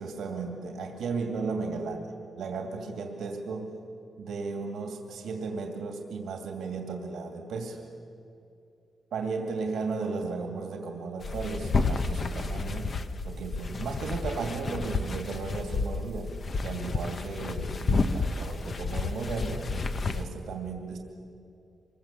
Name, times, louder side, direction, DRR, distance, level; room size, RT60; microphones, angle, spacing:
voice 1, 0.0-3.8 4.2-7.9 9.1-12.9 13.2-16.3 16.6-19.7 20.1-21.0, right 4 dB, 80° right, 3 dB, 2.5 m, -35 dB
sound 1, 11.2-20.2, left 3 dB, 35° left, 0.9 m, -31 dB
25.5 x 22.5 x 7.4 m, 2.6 s
wide cardioid pair, 175°, 0 cm